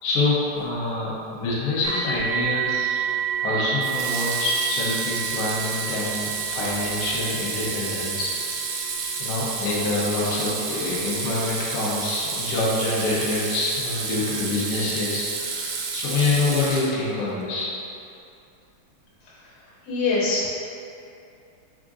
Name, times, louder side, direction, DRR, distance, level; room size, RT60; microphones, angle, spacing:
voice 1, 0.0-3.0 3.4-8.3 9.2-17.7, left 2 dB, 85° left, -7 dB, 1.2 m, -26 dB
sound 1, 1.8-14.7 15.6-15.7 16.2-16.3, right 9 dB, 50° left, 1.0 m, -32 dB
Water tap faucet / Sink (filling or washing), 2.2-2.5 3.8-17.2, right 4 dB, 80° right, 1.6 m, -30 dB
voice 2, 19.9-20.5, left 3 dB, 65° left, -7 dB, 2.0 m, -24 dB
4.9 x 3.6 x 2.4 m, 2.6 s
omnidirectional pair, 3.5 m